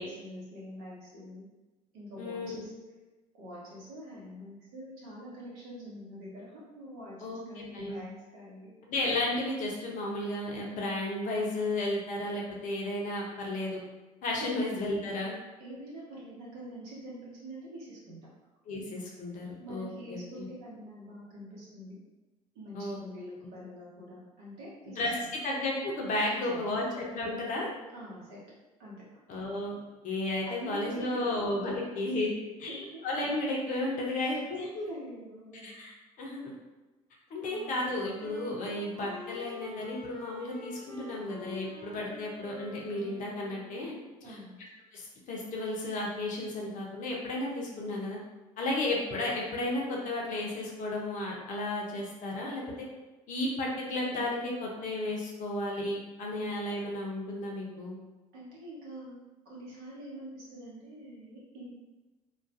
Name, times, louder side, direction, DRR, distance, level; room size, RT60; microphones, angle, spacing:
voice 1, 0.0-1.5 1.9-2.7 3.3-8.7 14.4-14.5 15.6-18.2 19.6-21.9 22.5-25.3 26.2-26.6 27.9-28.4 28.8-29.0 30.4-31.9 32.7-33.0 34.1-34.4 34.9-35.7 44.2-44.6 58.3-59.2 59.4-61.7, equal, 55° right, -7 dB, 1.0 m, -45 dB
voice 2, 2.2-2.7 7.2-8.0 8.9-13.8 14.2-15.4 18.7-20.5 22.7-23.0 23.4-23.5 25.0-25.2 25.4-27.7 29.3-29.7 30.0-32.3 32.6-34.9 35.6-36.4 37.3-43.9 44.3-44.4 44.9-48.2 48.6-52.6 53.3-58.0, left 2 dB, 45° left, -2 dB, 0.6 m, -33 dB
Wind instrument woodwind instrument, 37.4-44.0, left 3 dB, 10° left, 1.0 m, -46 dB
2.4 x 2.2 x 2.5 m, 1.1 s
figure-of-eight pair, 55°, 19 cm